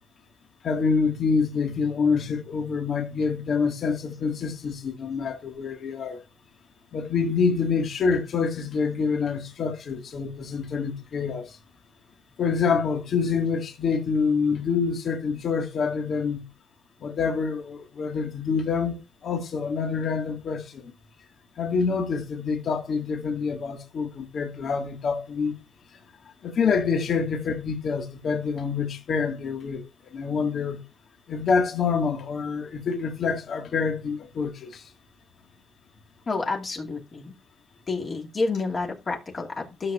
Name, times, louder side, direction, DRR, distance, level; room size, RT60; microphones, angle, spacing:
voice 1, 0.6-6.2 6.9-11.6 12.4-16.4 17.0-20.9 21.6-25.5 26.4-29.8 30.1-30.8 31.3-34.8, left 5 dB, 60° left, 1.9 m, -26 dB
voice 2, 36.3-37.3 37.9-39.9, left 3 dB, 40° left, 2.4 m, -29 dB
13.0 x 6.6 x 2.5 m
cardioid pair, 90°, 0 cm